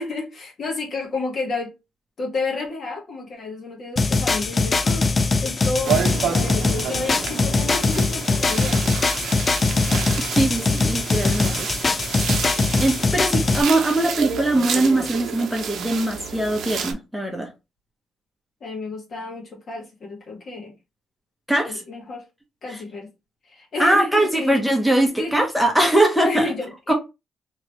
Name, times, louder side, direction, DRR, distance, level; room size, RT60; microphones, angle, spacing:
voice 1, 0.0-1.7 2.2-5.1 5.4-5.9 6.3-9.0 18.6-20.7 21.6-22.2 22.6-23.1 23.5-24.6 25.1-25.4 26.2-26.9, left 3 dB, 50° left, 1.5 m, -31 dB
sound 1, 4.0-13.6, left 3 dB, 35° left, 0.3 m, -21 dB
sound 2, 5.8-16.9, right 7 dB, 70° right, 0.7 m, -30 dB
voice 2, 10.3-11.7 12.8-17.5 21.5-21.8 22.7-22.8 23.8-26.5 26.9-27.0, right 1 dB, ahead, 0.9 m, -21 dB
3.0 x 3.0 x 3.0 m
cardioid pair, 90°, 0 cm